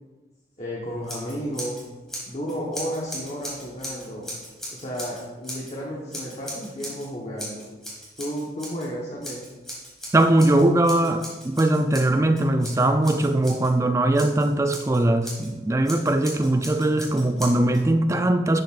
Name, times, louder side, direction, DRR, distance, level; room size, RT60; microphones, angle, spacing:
voice 1, 0.6-1.8 2.3-4.3 4.7-7.7 8.2-9.4, equal, 35° left, -4 dB, 1.1 m, -32 dB
Scissors, 1.0-1.8 2.1-5.7 6.1-7.1 7.4-8.9 9.2-13.7 14.1-15.5 15.8-17.8, equal, ahead, 2.0 m, -38 dB
voice 2, 10.1-18.6, right 1 dB, 15° right, 8 dB, 0.3 m, -20 dB
11.5 x 6.3 x 2.5 m, 1.2 s
head